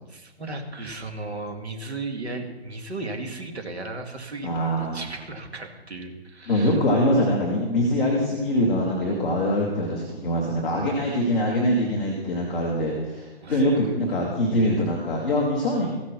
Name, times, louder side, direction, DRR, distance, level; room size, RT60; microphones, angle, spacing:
voice 1, 0.1-6.8 13.4-13.8, right 2 dB, 75° right, 4 dB, 2.3 m, -35 dB
voice 2, 4.4-5.0 6.5-15.9, left 1 dB, ahead, -10 dB, 0.4 m, -23 dB
14.5 x 6.4 x 6.0 m, 1.2 s
figure-of-eight pair, 140°, 32 cm